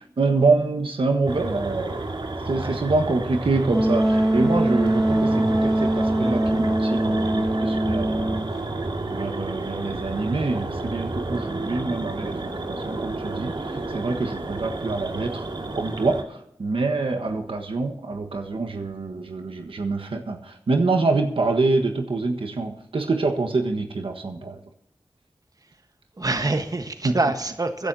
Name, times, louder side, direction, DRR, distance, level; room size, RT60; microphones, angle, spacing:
voice 1, 0.2-2.1 2.5-8.4 9.1-15.4 15.7-24.6 27.0-27.2, right 3 dB, 85° right, 4 dB, 1.5 m, -26 dB
sound 1, 1.3-16.2, right 2 dB, 65° right, 2.1 m, -31 dB
Wind instrument woodwind instrument, 3.7-8.5, right 1 dB, ahead, 0.9 m, -22 dB
voice 2, 26.2-27.9, right 2 dB, 45° right, 7 dB, 1.4 m, -26 dB
22.5 x 10.5 x 2.8 m, 0.80 s
cardioid pair, 45°, 9 cm